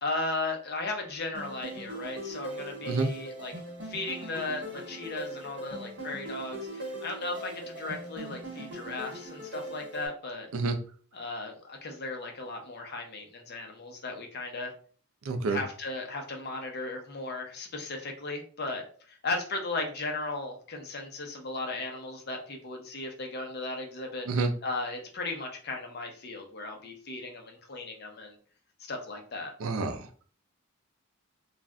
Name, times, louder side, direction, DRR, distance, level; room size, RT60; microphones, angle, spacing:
voice 1, 0.0-3.5 3.8-10.5 11.1-14.7 15.5-24.3 24.6-28.4 28.9-29.5, left 2 dB, 50° left, 2 dB, 0.7 m, -36 dB
sound 1, 1.3-10.1, right 1 dB, 60° right, 1.0 m, -40 dB
voice 2, 15.3-15.6 24.3-24.5 29.6-30.0, right 3 dB, 80° right, 7 dB, 0.5 m, -28 dB
2.4 x 2.1 x 3.5 m, 0.43 s
head